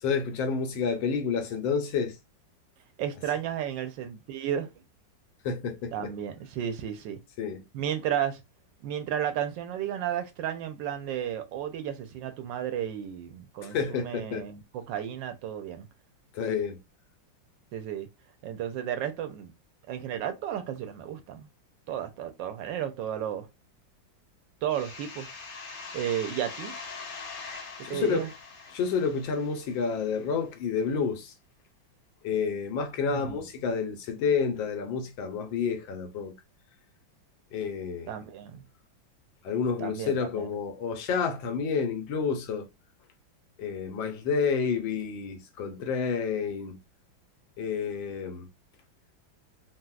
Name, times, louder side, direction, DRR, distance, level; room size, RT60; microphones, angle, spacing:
voice 1, 0.0-2.2 5.4-6.1 7.4-7.6 13.6-14.4 16.3-16.8 27.8-28.3 28.7-31.3 32.2-36.3 37.5-38.1 39.4-42.7 43.6-46.8 47.6-48.5, left 6 dB, 80° left, 1.4 m, -29 dB
voice 2, 3.0-4.7 5.9-7.2 7.7-8.4 8.8-15.9 17.7-18.1 18.4-19.5 19.9-21.5 21.9-23.5 24.6-25.3 25.9-26.7 27.9-28.3 33.0-33.4 38.1-38.6 39.8-40.5, right 10 dB, 75° right, 1.2 m, -33 dB
sound 1, 24.7-30.2, left 4 dB, 60° left, 0.7 m, -42 dB
4.1 x 2.1 x 2.3 m
omnidirectional pair, 2.1 m